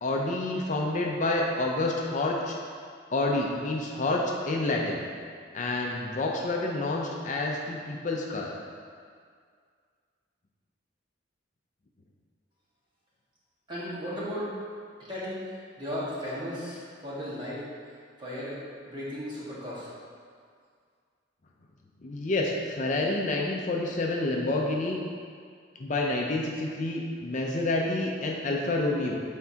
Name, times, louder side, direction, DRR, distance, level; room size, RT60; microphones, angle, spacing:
voice 1, 0.0-2.6 3.1-5.0 5.5-8.5 22.0-25.0 25.8-29.2, left 2 dB, 40° left, -1 dB, 0.5 m, -28 dB
voice 2, 13.7-14.5 15.1-17.6 18.2-18.6 18.9-19.9, equal, 25° right, -9 dB, 1.6 m, -35 dB
8.2 x 4.4 x 2.8 m, 2.1 s
head